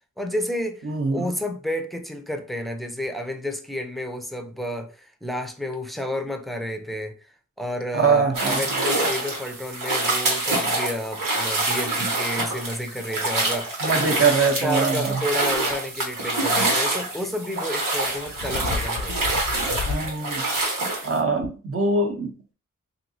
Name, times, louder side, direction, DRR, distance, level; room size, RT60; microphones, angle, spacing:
voice 1, 0.2-7.1 7.6-14.3 14.6-19.4, left 1 dB, ahead, 0.4 m, -31 dB
voice 2, 0.8-1.3 7.9-8.7 13.8-15.2 19.8-20.4 21.0-22.5, right 4 dB, 45° right, 0.7 m, -23 dB
sound 1, 8.3-21.1, right 2 dB, 85° right, 1.1 m, -26 dB
sound 2, 15.5-15.8 17.7-20.1 20.6-20.7 21.4-21.5, left 5 dB, 55° left, 0.4 m, -32 dB
3.0 x 2.7 x 2.7 m
wide cardioid pair, 90°, 32 cm